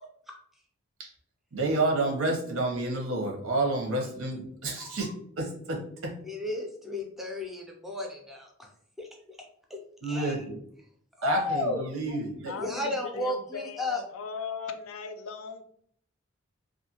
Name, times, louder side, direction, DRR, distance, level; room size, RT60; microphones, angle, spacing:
voice 1, 1.5-5.1 5.4-6.1 10.0-10.6 11.2-12.5, right 2 dB, 85° right, -1 dB, 0.8 m, -29 dB
voice 2, 4.8-5.1 6.2-8.7 9.0-9.1 9.7-9.8 10.1-10.3 11.2-11.8 12.6-14.0, left 2 dB, ahead, 1 dB, 0.4 m, -33 dB
voice 3, 12.5-15.6, left 5 dB, 80° left, 8 dB, 0.4 m, -38 dB
2.6 x 2.5 x 2.8 m, 0.64 s
head